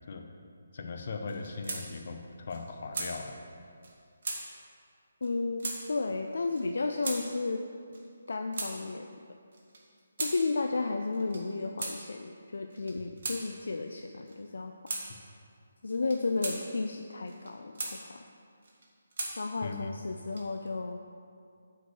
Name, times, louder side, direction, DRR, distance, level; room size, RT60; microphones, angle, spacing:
voice 1, 0.7-2.2 2.5-3.4 19.6-19.9, left 4 dB, 50° left, 4 dB, 0.9 m, -38 dB
sound 1, 1.3-1.8 2.2-2.3 2.5-3.1 3.8-3.9 4.2-4.4 5.2-5.3 5.6-5.8 6.5-6.6 7.0-7.2 7.9-8.7 9.5-10.4 11.1-11.4 11.8-12.0 12.7-13.4 14.3-14.4 14.9-15.0 15.9-16.6 17.3-17.9 18.6-19.3 20.1-20.7, right 3 dB, 55° right, 1.7 m, -37 dB
voice 2, 5.2-7.6 8.3-9.1 10.2-14.7 15.8-18.3 19.4-21.0, left 3 dB, 70° left, 5 dB, 0.4 m, -33 dB
8.1 x 4.6 x 6.9 m, 2.3 s
figure-of-eight pair, 155°, 0 cm